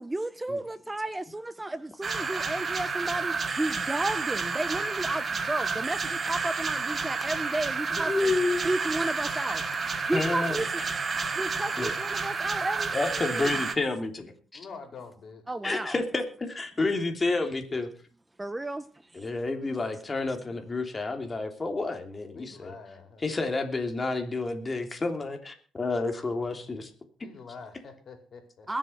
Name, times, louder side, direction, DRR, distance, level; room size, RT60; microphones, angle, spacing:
voice 1, 0.0-8.3 8.6-9.6 10.1-10.7 11.3-13.5 15.5-16.0 18.4-18.8 19.1-19.3 28.7-28.8, right 2 dB, 15° right, 0.7 m, -32 dB
sound 1, 2.0-13.7, right 4 dB, 40° right, 2.1 m, -30 dB
voice 2, 7.9-8.6 10.0-10.6 11.8-11.9 12.9-14.6 15.6-17.9 19.1-22.7 23.2-26.9, left 3 dB, 25° left, 3.1 m, -30 dB
voice 3, 14.5-15.4 22.3-23.2 27.2-28.7, left 5 dB, 55° left, 4.3 m, -46 dB
21.5 x 7.7 x 5.9 m
cardioid pair, 90°, 0 cm